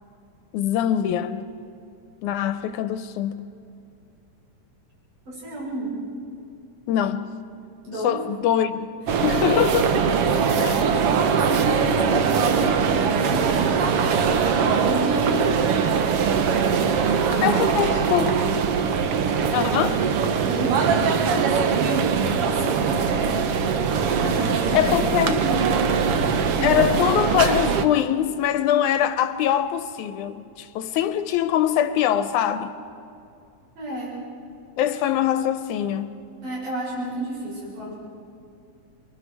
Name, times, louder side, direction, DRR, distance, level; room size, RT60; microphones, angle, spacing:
voice 1, 0.5-1.5 2.2-3.5 6.9-7.3 8.0-8.9 9.2-9.9 10.6-11.0 17.4-18.4 19.5-20.1 24.7-25.5 26.6-32.8 34.8-36.1, left 10 dB, 85° left, 2.1 m, -23 dB
voice 2, 5.3-6.0 7.8-8.2 10.9-13.8 14.3-15.7 16.9-18.3 20.4-22.1 22.5-23.9 24.2-24.9 33.8-34.2 36.4-37.9, right 1 dB, 85° right, 8.3 m, -32 dB
sound 1, 9.1-27.8, right 6 dB, 60° right, 1.7 m, -21 dB
29.0 x 23.0 x 4.7 m
omnidirectional pair, 3.5 m